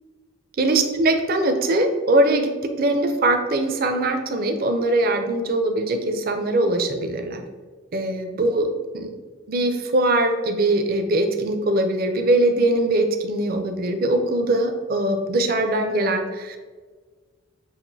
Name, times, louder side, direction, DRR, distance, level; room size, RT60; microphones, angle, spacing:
voice 1, 0.6-7.4 7.9-9.1 9.5-16.6, right 2 dB, 45° right, 6 dB, 0.5 m, -21 dB
7.2 x 2.5 x 2.7 m, 1.4 s
head